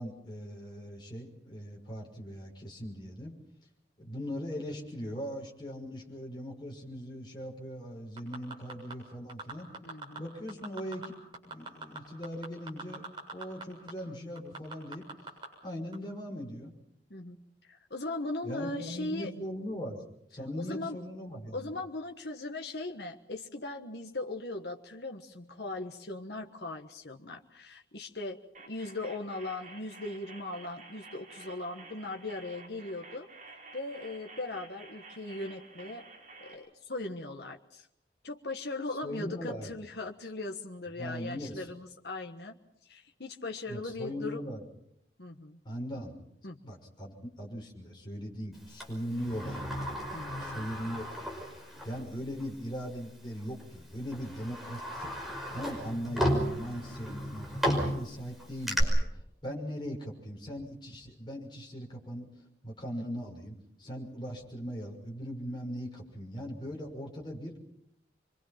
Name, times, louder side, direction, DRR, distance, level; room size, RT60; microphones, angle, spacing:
voice 1, 0.0-3.4 4.0-9.7 10.2-11.1 11.4-13.0 13.3-15.1 15.6-16.7 18.4-20.0 20.3-21.7 39.0-39.7 41.0-41.7 43.7-44.7 45.6-46.2 46.6-49.9 50.4-51.4 51.8-55.1 55.5-62.3 62.6-67.6, equal, 25° left, -1 dB, 6.2 m, -39 dB
sound 1, 8.2-8.9 9.3-10.2 10.5-11.1 11.3-13.6 13.9-14.0 14.4-15.5 15.9-16.0, right 3 dB, 25° right, 7.2 m, -41 dB
voice 2, 9.8-10.3 17.1-19.3 20.6-21.0 21.5-33.3 33.7-36.1 36.4-37.9 38.2-44.4 45.2-45.6 46.4-46.6 50.1-50.7, left 2 dB, 65° left, 2 dB, 1.4 m, -39 dB
sound 2, 28.5-36.5, right 3 dB, 45° right, 5.1 m, -51 dB
Sliding door, 48.8-52.0 52.4-52.5 53.4-53.6 54.1-58.8, equal, ahead, 5.3 m, -34 dB
27.5 x 24.0 x 5.9 m, 0.76 s
head